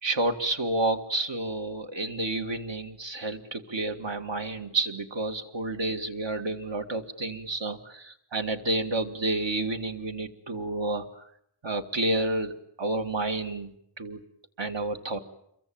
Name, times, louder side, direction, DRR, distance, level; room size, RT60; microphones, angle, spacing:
voice 1, 0.0-11.2 11.6-14.2 14.6-15.2, right 2 dB, 65° right, 6 dB, 2.3 m, -30 dB
28.0 x 23.0 x 8.9 m, 0.76 s
wide cardioid pair, 90°, 47 cm